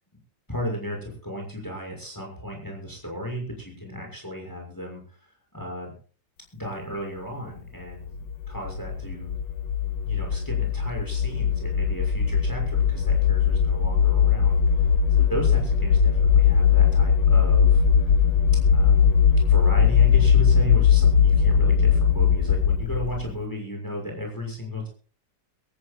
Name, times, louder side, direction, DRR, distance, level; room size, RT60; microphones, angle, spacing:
voice 1, 0.5-5.9 6.5-8.1 8.5-9.4 10.0-18.1 18.6-24.9, equal, 10° left, 0 dB, 6.4 m, -35 dB
sound 1, 8.0-23.3, left 7 dB, 80° left, 1.5 m, -20 dB
25.0 x 14.0 x 2.4 m, 0.40 s
omnidirectional pair, 1.9 m